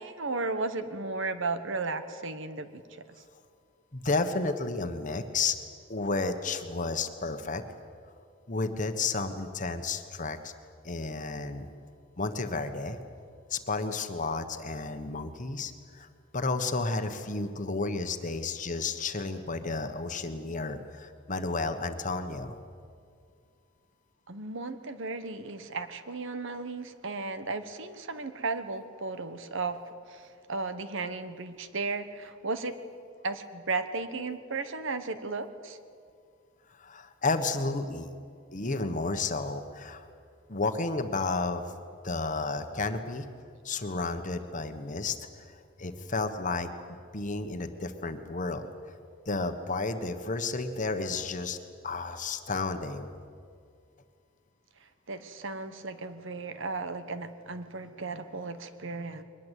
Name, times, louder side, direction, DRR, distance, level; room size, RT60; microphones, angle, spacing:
voice 1, 0.0-2.8 24.3-29.8 30.1-32.7 33.2-35.8 55.1-59.2, right 3 dB, 60° right, 11 dB, 1.3 m, -35 dB
voice 2, 3.9-5.6 5.9-7.6 8.5-10.5 10.8-11.6 12.2-13.0 13.5-16.1 16.3-22.6 36.8-38.1 38.5-40.1 40.5-41.7 42.0-43.3 43.6-45.2 45.8-46.7 47.1-48.6 49.3-51.6 51.8-53.1, left 3 dB, 35° left, 8 dB, 1.3 m, -32 dB
22.5 x 20.0 x 8.3 m, 2.3 s
head